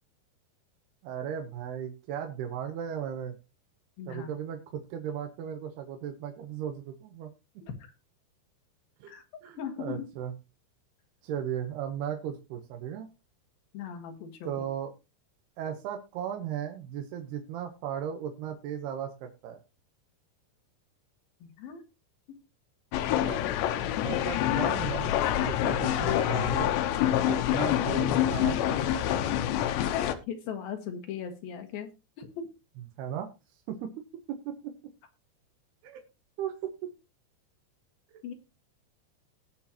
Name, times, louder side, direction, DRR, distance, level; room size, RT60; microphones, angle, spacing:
voice 1, 1.0-3.3 4.1-7.3 9.0-9.1 9.4-10.3 11.2-13.1 14.5-14.9 15.6-19.6 23.1-23.4 24.0-26.7 27.3-29.1 33.0-33.3 33.7-33.9 35.8-36.0 36.4-36.7 38.1-38.2, right 9 dB, 75° right, 4 dB, 3.0 m, -36 dB
voice 2, 4.0-4.3 7.6-7.7 9.1-9.2 9.6-10.1 13.7-14.6 21.4-21.8 23.9-24.1 30.3-31.9 32.2-32.5 38.2-38.3, left 7 dB, 65° left, 5 dB, 3.3 m, -38 dB
sound 1, 22.9-30.2, left 11 dB, 85° left, 3.2 m, -26 dB
19.0 x 6.5 x 2.9 m, 0.27 s
omnidirectional pair, 5.0 m